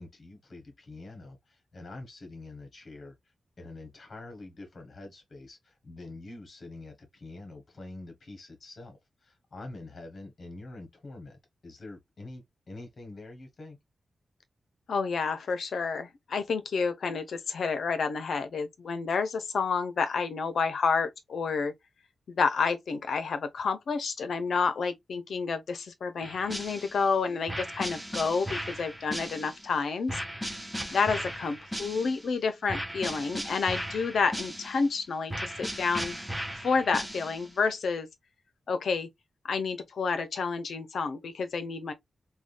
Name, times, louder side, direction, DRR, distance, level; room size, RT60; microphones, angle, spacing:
voice 1, 0.0-13.8, left 2 dB, 40° left, 1.2 m, -46 dB
voice 2, 14.9-21.7 22.3-30.2 30.9-36.2 36.6-38.1 38.7-39.1 39.4-41.9, left 5 dB, 65° left, 0.6 m, -29 dB
sound 1, 26.2-27.1 27.5-29.7 30.1-32.3 32.7-34.9 35.3-37.5, equal, ahead, 0.6 m, -37 dB
3.6 x 2.2 x 2.4 m
wide cardioid pair, 170°, 0 cm